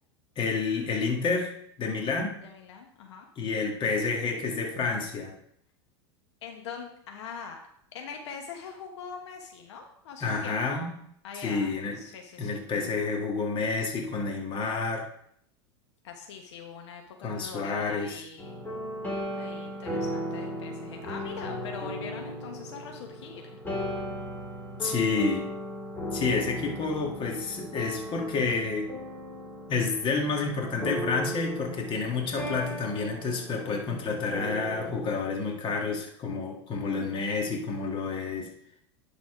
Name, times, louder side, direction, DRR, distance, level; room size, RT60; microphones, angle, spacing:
voice 1, 0.4-1.5 1.8-2.4 3.4-5.3 10.2-10.9 11.3-12.0 12.4-15.1 17.2-18.2 24.8-25.5 26.1-28.9 29.7-38.5, left 4 dB, 35° left, 2 dB, 2.0 m, -29 dB
voice 2, 2.4-3.3 6.4-7.6 7.9-10.9 11.2-11.7 12.0-12.6 16.0-18.7 19.4-23.6, left 6 dB, 75° left, 3 dB, 1.2 m, -42 dB
christmas carols on piano, 18.4-35.2, equal, 10° left, 3.4 m, -37 dB
10.5 x 4.2 x 5.0 m, 0.70 s
hypercardioid pair, 105°, 15 cm